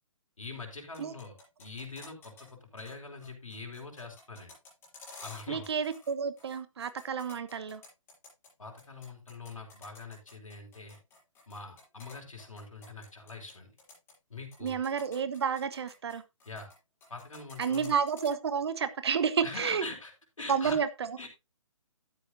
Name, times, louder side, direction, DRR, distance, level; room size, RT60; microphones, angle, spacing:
voice 1, 0.4-1.3 1.6-4.5 5.2-5.6 8.6-11.0 11.5-13.7 14.3-14.8 16.5-16.7 17.1-18.0 19.4-20.1 20.4-20.8 21.2-21.3, left 3 dB, 70° left, 4.5 m, -43 dB
sound 1, 0.9-2.5 2.8-2.9 3.2-6.1 6.4-8.5 8.8-13.5 13.8-14.1 14.5-16.8 17.0-18.3, left 3 dB, 15° left, 6.9 m, -52 dB
voice 2, 5.5-7.8 14.6-16.2 17.6-19.9 20.5-21.2, right 6 dB, 50° right, 1.2 m, -30 dB
12.5 x 10.5 x 2.6 m
figure-of-eight pair, 135°, 17 cm